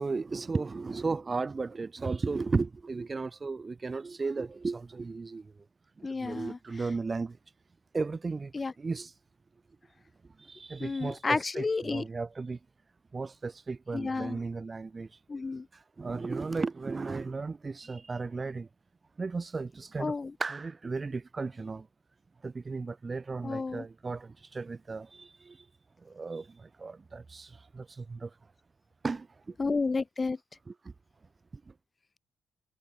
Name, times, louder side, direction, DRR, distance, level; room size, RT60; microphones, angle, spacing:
voice 1, 0.0-5.5 6.0-7.4 7.9-9.1 10.4-12.6 13.1-15.1 15.7-18.7 19.2-21.9 22.4-25.6 26.0-28.3 29.0-29.5 30.7-30.8 31.7-31.8, right 4 dB, 30° right, 1.5 m, -35 dB
voice 2, 6.0-6.6 8.5-8.7 10.8-12.0 13.9-14.4 15.3-15.7 20.0-20.3 23.4-23.8 29.6-30.4, left 4 dB, 30° left, 0.8 m, -31 dB
cardioid pair, 90°, 0 cm